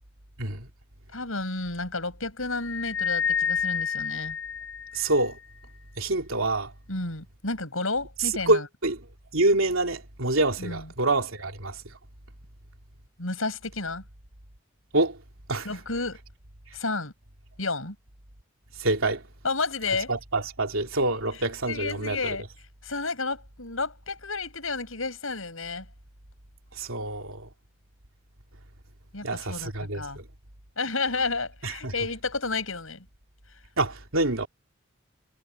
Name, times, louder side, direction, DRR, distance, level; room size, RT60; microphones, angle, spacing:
voice 1, 0.4-0.7 4.9-5.4 6.0-6.7 8.2-9.0 9.3-11.8 14.9-15.2 15.5-15.7 18.8-19.2 20.1-22.4 26.7-27.5 29.2-30.2 31.6-31.9 33.8-34.5, right 2 dB, 85° right, 3.1 m, -26 dB
voice 2, 1.1-4.4 6.9-8.7 10.6-10.8 13.2-14.0 15.6-16.2 16.7-17.1 17.6-18.0 19.4-20.1 21.7-22.4 22.8-25.9 29.1-30.2 30.8-33.0, left 3 dB, 85° left, 7.8 m, -31 dB
sound 1, 2.6-5.3, left 7 dB, 60° left, 0.8 m, -29 dB
head